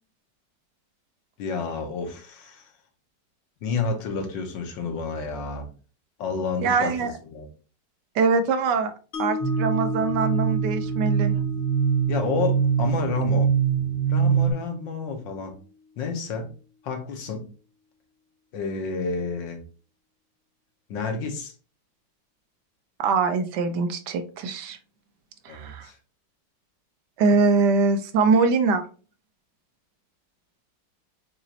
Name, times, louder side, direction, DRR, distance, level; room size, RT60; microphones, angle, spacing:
voice 1, 1.4-2.7 3.6-5.7 6.2-6.9 7.3-7.5 12.1-13.5 14.1-15.5 16.0-16.5 16.8-17.5 18.5-19.6 20.9-21.5 25.5-26.0, left 4 dB, 85° left, 4 dB, 1.7 m, -30 dB
voice 2, 6.6-7.1 8.1-8.9 9.2-11.3 23.0-24.8 25.4-25.9 27.2-28.8, right 4 dB, 75° right, 8 dB, 1.2 m, -23 dB
Mallet percussion, 9.1-15.3, left 4 dB, 65° left, 0.7 m, -35 dB
sound 1, 9.4-14.5, right 8 dB, 60° right, 1.6 m, -23 dB
6.1 x 3.0 x 2.8 m, 0.36 s
omnidirectional pair, 1.9 m